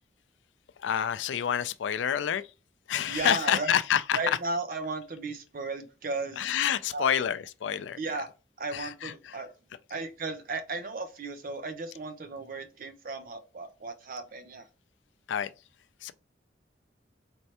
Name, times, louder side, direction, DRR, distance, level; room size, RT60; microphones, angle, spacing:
voice 1, 0.8-2.4 2.9-4.2 6.4-8.0 8.7-9.4 15.3-15.5 16.0-16.1, left 9 dB, 85° left, 0.4 m, -28 dB
voice 2, 3.1-3.7 4.1-6.5 6.9-7.2 8.0-8.3 8.6-9.5 9.9-14.7, right 3 dB, 50° right, 0.6 m, -35 dB
4.4 x 3.2 x 2.8 m
head